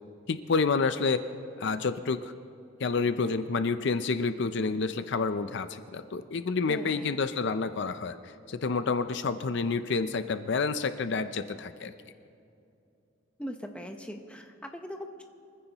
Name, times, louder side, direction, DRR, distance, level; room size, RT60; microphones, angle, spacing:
voice 1, 0.3-1.2 1.6-2.3 2.8-8.2 8.5-11.9, left 4 dB, 55° left, 10 dB, 0.5 m, -29 dB
voice 2, 6.7-7.2 13.4-15.2, equal, 5° left, 4 dB, 0.9 m, -40 dB
24.5 x 15.0 x 3.0 m, 2.6 s
head